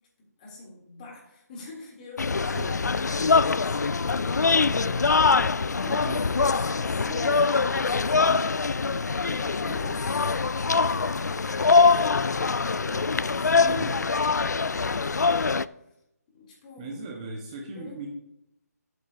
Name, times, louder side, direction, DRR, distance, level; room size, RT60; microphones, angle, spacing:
voice 1, 0.2-16.0 16.3-17.1 17.7-18.1, left 3 dB, 30° left, -3 dB, 3.4 m, -46 dB
sound 1, 2.2-15.7, left 4 dB, 85° left, 0.4 m, -23 dB
voice 2, 2.3-2.8 5.9-6.2 13.6-14.0 16.8-18.1, right 2 dB, 25° right, 0 dB, 1.4 m, -37 dB
14.5 x 8.2 x 2.9 m, 0.81 s
figure-of-eight pair, 155°, 9 cm